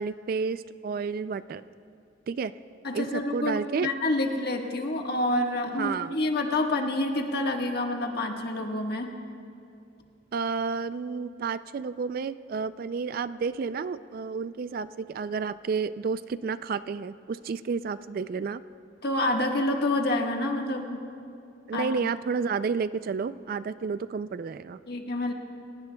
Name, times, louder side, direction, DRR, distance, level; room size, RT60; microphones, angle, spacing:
voice 1, 0.0-1.6 2.3-2.5 2.9-3.9 5.7-6.1 10.3-18.6 21.7-24.8, right 5 dB, 50° right, 14 dB, 0.3 m, -31 dB
voice 2, 2.8-9.1 19.0-21.0 21.7-22.1 24.9-25.3, left 1 dB, 55° left, 2 dB, 1.4 m, -28 dB
29.5 x 17.5 x 2.2 m, 2.5 s
head